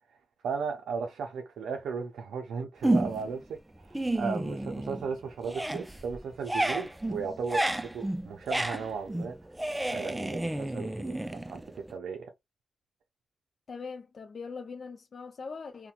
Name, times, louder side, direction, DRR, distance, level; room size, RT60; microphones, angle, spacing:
voice 1, 0.4-9.4 9.8-11.6 11.9-12.2, right 5 dB, 90° right, 0.4 m, -36 dB
sound 1, 2.8-3.4 3.8-5.1 5.4-11.9, right 1 dB, 15° right, 0.4 m, -31 dB
voice 2, 13.7-15.9, left 5 dB, 65° left, 0.4 m, -41 dB
2.8 x 2.1 x 2.3 m
cardioid pair, 50°, 0 cm